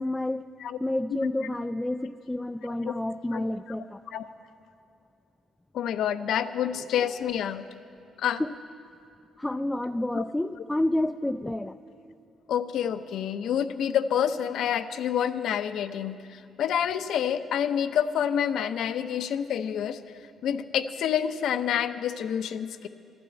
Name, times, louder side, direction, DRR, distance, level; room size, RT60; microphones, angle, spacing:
voice 1, 0.0-0.4 0.8-4.0 8.4-8.5 9.4-11.8, left 1 dB, 10° left, 8 dB, 0.3 m, -29 dB
voice 2, 2.6-2.9 3.3-3.4 4.1-4.2 5.7-7.6 8.2-8.4 10.1-10.2 12.5-20.0 20.4-22.9, left 9 dB, 75° left, 11 dB, 0.6 m, -28 dB
12.5 x 11.5 x 8.7 m, 2.5 s
cardioid pair, 90°, 0 cm